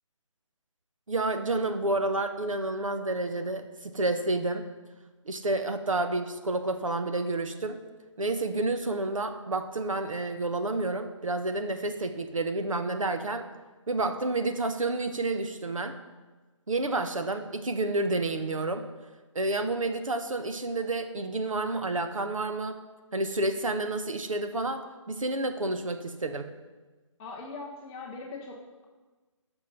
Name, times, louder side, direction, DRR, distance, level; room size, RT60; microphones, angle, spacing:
voice 1, 1.1-4.7 5.2-7.8 8.2-13.4 13.9-15.9 16.7-18.8 19.3-22.8 23.1-26.5, right 2 dB, 85° right, 7 dB, 1.2 m, -30 dB
voice 2, 27.2-28.8, left 3 dB, 5° left, -2 dB, 0.5 m, -41 dB
13.5 x 6.1 x 6.0 m, 1.3 s
hypercardioid pair, 165°, 17 cm